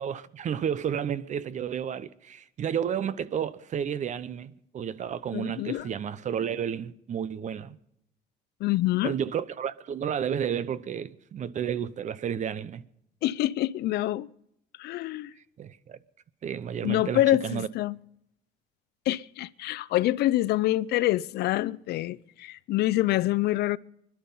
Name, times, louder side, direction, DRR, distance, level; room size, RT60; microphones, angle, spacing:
voice 1, 0.0-7.8 9.0-12.8 15.6-16.0 16.4-17.7, right 8 dB, 45° right, 0.9 m, -31 dB
voice 2, 5.3-5.9 8.6-9.1 13.2-14.3 14.8-15.3 16.8-18.0 19.1-23.8, left 15 dB, 75° left, 0.6 m, -26 dB
21.5 x 12.0 x 5.6 m
cardioid pair, 110°, 17 cm